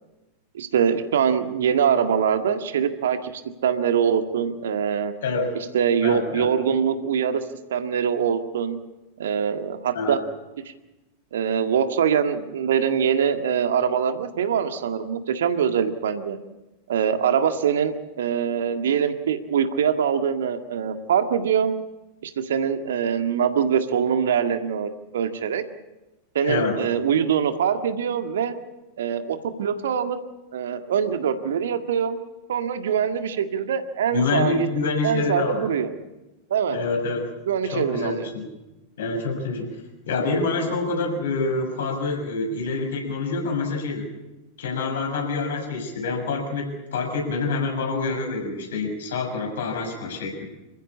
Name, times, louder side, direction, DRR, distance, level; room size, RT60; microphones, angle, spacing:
voice 1, 0.5-3.3 3.6-5.1 5.7-7.4 7.7-8.8 9.2-10.2 11.3-16.4 16.9-21.8 22.2-25.6 26.4-28.5 29.0-30.2 30.5-32.2 32.5-34.7 35.0-35.9 36.5-36.8 37.5-38.3, right 7 dB, 60° right, 8 dB, 1.8 m, -23 dB
voice 2, 5.2-5.5 6.0-6.5 9.9-10.2 26.4-26.8 34.1-35.7 36.7-37.2 37.7-38.5 39.0-39.7 40.1-44.1 44.6-50.4, left 3 dB, 60° left, 2 dB, 6.6 m, -26 dB
27.5 x 15.0 x 8.6 m, 1.0 s
figure-of-eight pair, 90°, 0 cm